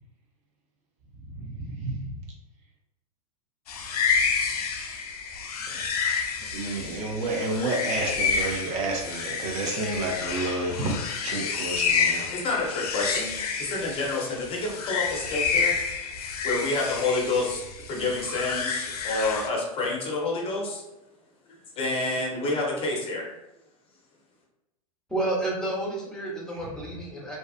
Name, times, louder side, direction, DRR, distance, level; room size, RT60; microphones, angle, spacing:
voice 1, 1.2-2.2 5.7-6.1 6.5-11.0 11.2-12.3 26.5-26.7, right 2 dB, 40° right, 0 dB, 0.5 m, -30 dB
sound 1, 3.7-19.5, left 5 dB, 85° left, 0.4 m, -29 dB
voice 2, 12.3-13.3 13.6-15.8 16.4-17.6 17.9-20.8 21.8-23.2, left 2 dB, 30° left, -1 dB, 0.6 m, -28 dB
voice 3, 25.1-27.4, right 2 dB, 5° left, -4 dB, 0.8 m, -30 dB
2.5 x 2.3 x 2.4 m, 0.91 s
hypercardioid pair, 110°, 19 cm